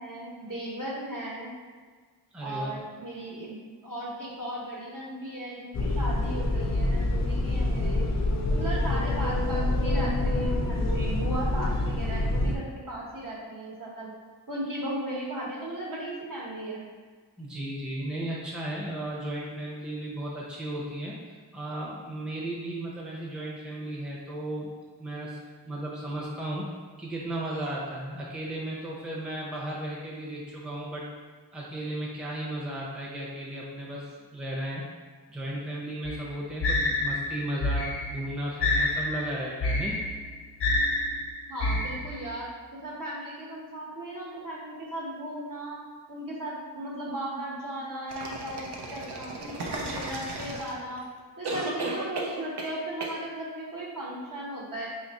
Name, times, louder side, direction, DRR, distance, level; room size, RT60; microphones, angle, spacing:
voice 1, 0.0-1.5 2.4-3.6 3.8-8.1 8.5-14.1 14.5-16.9 41.5-45.8 46.1-51.0 51.4-54.9, right 1 dB, 50° right, -5 dB, 1.1 m, -36 dB
voice 2, 2.3-2.7 8.6-9.0 17.4-24.7 25.0-25.4 25.6-26.7 27.0-31.0 31.5-34.8 35.3-40.0, right 1 dB, ahead, -5 dB, 0.6 m, -35 dB
sound 1, 5.7-12.6, left 1 dB, 45° left, 0.5 m, -26 dB
sound 2, 36.0-42.4, left 2 dB, 90° left, 0.8 m, -28 dB
sound 3, 48.1-51.0 51.4-52.7 53.0-53.2, right 2 dB, 80° right, 0.6 m, -35 dB
3.0 x 2.5 x 4.1 m, 1.5 s
wide cardioid pair, 70°, 40 cm